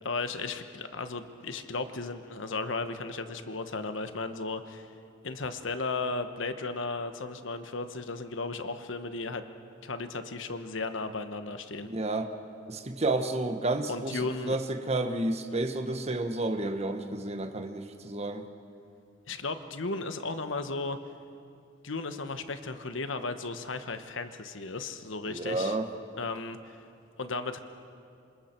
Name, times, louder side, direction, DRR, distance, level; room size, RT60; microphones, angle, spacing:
voice 1, 0.0-4.9 5.2-9.4 9.8-11.9 13.9-14.6 19.3-21.0 21.8-25.8 26.2-26.8 27.2-27.6, left 3 dB, 75° left, 9 dB, 1.1 m, -35 dB
voice 2, 11.8-12.3 12.7-18.4 25.3-25.9, right 2 dB, 35° right, 7 dB, 1.2 m, -31 dB
27.0 x 26.0 x 4.5 m, 2.5 s
head